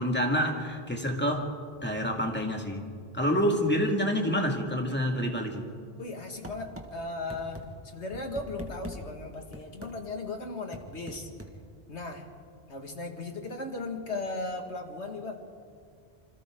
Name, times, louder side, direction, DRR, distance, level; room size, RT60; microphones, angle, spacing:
voice 1, 0.0-1.5 1.8-2.8 3.1-5.7, equal, 10° left, 1 dB, 2.3 m, -27 dB
voice 2, 6.0-11.3 11.9-12.3 12.7-15.3, left 2 dB, 85° left, 3 dB, 2.4 m, -37 dB
sound 1, 6.4-6.9 7.3-7.6 8.1-9.0 9.5-9.9 10.7-11.5, right 1 dB, 10° right, 1.9 m, -41 dB
27.5 x 26.5 x 3.9 m, 2.2 s
omnidirectional pair, 1.1 m